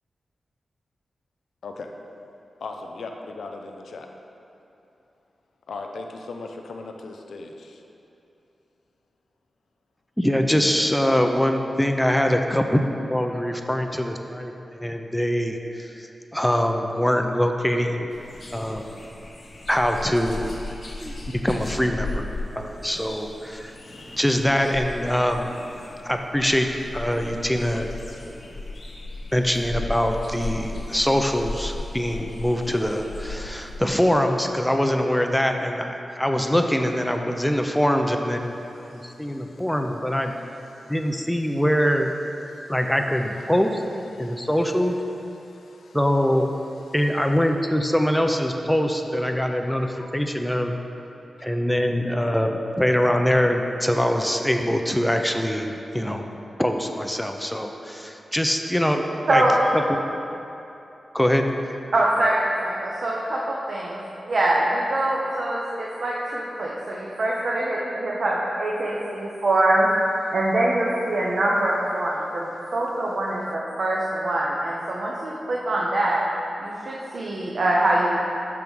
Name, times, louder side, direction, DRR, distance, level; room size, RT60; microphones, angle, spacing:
voice 1, 2.6-4.1 5.7-7.8 38.5-39.6 40.7-40.9 42.5-42.7 44.1-44.5 45.3-46.0 46.7-46.9 49.2-49.4 49.7-50.1 51.4-51.5 68.1-68.2 68.9-69.0 72.3-72.4 72.6-72.7, left 3 dB, 85° left, 3 dB, 0.5 m, -40 dB
voice 2, 10.2-12.8 13.1-18.1 18.5-18.9 19.7-20.6 21.0-21.1 21.4-23.7 24.2-25.5 26.0-26.7 26.9-28.5 29.3-40.4 40.9-42.1 42.7-43.8 44.2-45.0 45.9-46.5 46.9-50.7 51.4-56.3 56.6-59.4 59.7-60.0 61.1-61.4, equal, 5° left, 4 dB, 0.4 m, -23 dB
sound 1, 18.1-33.8, left 2 dB, 50° left, 0.9 m, -36 dB
voice 3, 61.9-69.9 70.3-76.2 76.6-78.2, right 1 dB, 60° right, -4 dB, 0.7 m, -24 dB
6.8 x 3.6 x 6.1 m, 2.8 s
wide cardioid pair, 80°, 0 cm